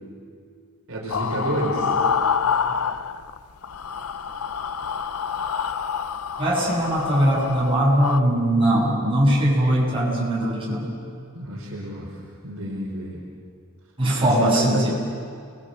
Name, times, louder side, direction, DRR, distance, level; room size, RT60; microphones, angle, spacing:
voice 1, 0.9-2.0 11.3-12.1 12.4-13.2 14.2-14.9, equal, 65° right, -2 dB, 4.6 m, -29 dB
sound 1, 1.1-3.4 3.6-8.2, left 6 dB, 90° left, 0.8 m, -27 dB
voice 2, 6.4-10.9 14.0-14.9, right 1 dB, 25° right, -4 dB, 7.8 m, -21 dB
30.0 x 21.5 x 8.1 m, 2.3 s
head